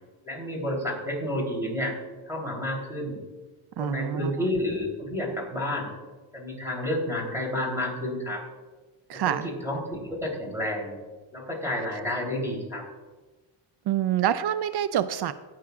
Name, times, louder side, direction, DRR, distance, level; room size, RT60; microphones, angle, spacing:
voice 1, 0.2-1.9 2.2-3.2 3.8-5.9 6.3-8.4 9.1-10.9 11.3-12.9, left 1 dB, 5° right, -1 dB, 3.3 m, -30 dB
voice 2, 3.8-4.3 9.1-9.5 13.9-15.3, right 10 dB, 55° right, 15 dB, 0.5 m, -26 dB
18.0 x 6.2 x 2.4 m, 1.2 s
cardioid pair, 65°, 49 cm